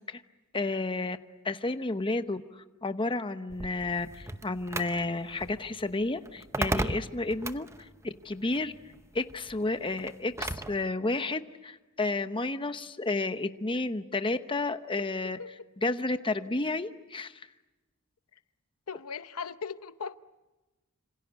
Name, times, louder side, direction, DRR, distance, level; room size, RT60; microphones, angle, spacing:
voice 1, 0.5-1.2 1.4-8.7 9.1-15.4 15.8-17.5, left 2 dB, 25° left, 0.9 m, -31 dB
sound 1, 3.5-10.8, right 2 dB, 15° right, 0.8 m, -37 dB
voice 2, 15.0-15.5 18.9-20.2, left 6 dB, 75° left, 0.8 m, -39 dB
27.0 x 26.5 x 8.1 m
head